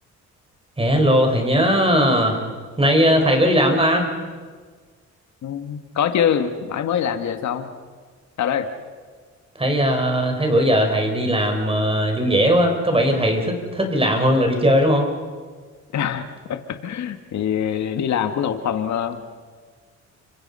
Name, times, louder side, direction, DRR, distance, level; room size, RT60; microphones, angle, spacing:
voice 1, 0.8-2.4 2.8-4.1 9.6-15.1, equal, 20° right, 4 dB, 5.3 m, -18 dB
voice 2, 5.4-7.7 8.4-8.7 15.9-19.2, left 8 dB, 65° left, 7 dB, 1.9 m, -24 dB
29.5 x 24.5 x 5.6 m, 1.5 s
cardioid pair, 90°, 30 cm